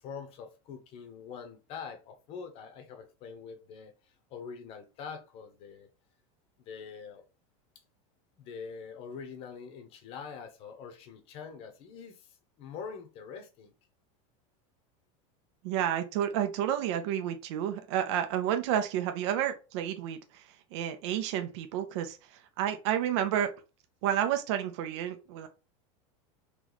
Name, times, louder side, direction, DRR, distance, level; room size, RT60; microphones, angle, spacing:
voice 1, 0.0-5.9 6.7-7.2 8.4-13.7, left 6 dB, 35° left, 0.8 m, -44 dB
voice 2, 15.6-23.5 24.0-25.5, right 10 dB, 55° right, 0.6 m, -30 dB
3.1 x 3.0 x 4.0 m
supercardioid pair, 170°, 17 cm